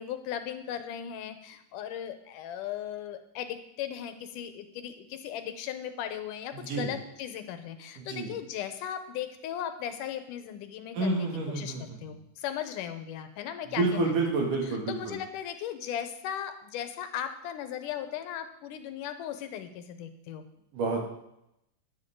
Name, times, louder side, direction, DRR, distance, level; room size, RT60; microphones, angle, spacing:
voice 1, 0.0-14.1 14.7-20.4, left 10 dB, 85° left, 9 dB, 2.5 m, -37 dB
voice 2, 6.5-6.9 8.0-8.3 10.9-11.8 13.8-15.2 20.7-21.1, right 3 dB, 80° right, 0 dB, 3.9 m, -29 dB
12.0 x 10.0 x 3.8 m, 0.81 s
omnidirectional pair, 3.6 m